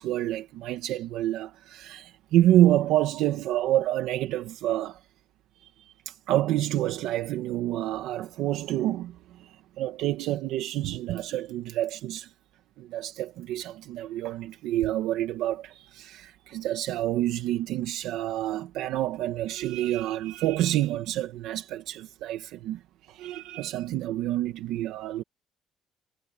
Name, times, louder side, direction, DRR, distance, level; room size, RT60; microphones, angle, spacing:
voice 1, 0.0-5.0 5.8-12.3 12.8-25.2, right 13 dB, 80° right, 1.3 m, -28 dB
cardioid pair, 155°, 0 cm